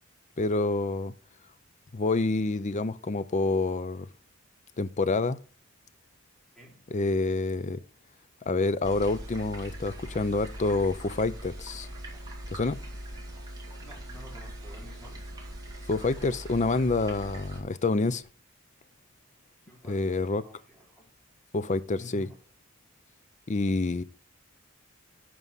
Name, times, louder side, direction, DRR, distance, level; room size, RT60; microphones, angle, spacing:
voice 1, 0.4-1.1 1.9-4.1 4.8-5.4 6.9-7.8 8.5-11.9 12.5-12.8 15.9-18.2 19.9-20.4 21.5-22.3 23.5-24.0, left 3 dB, 35° left, 0.5 m, -27 dB
sound 1, 8.8-17.6, equal, 20° right, 2.4 m, -41 dB
voice 2, 13.8-15.3 19.7-21.1 21.9-22.4, equal, ahead, 3.5 m, -51 dB
11.0 x 4.8 x 5.5 m
head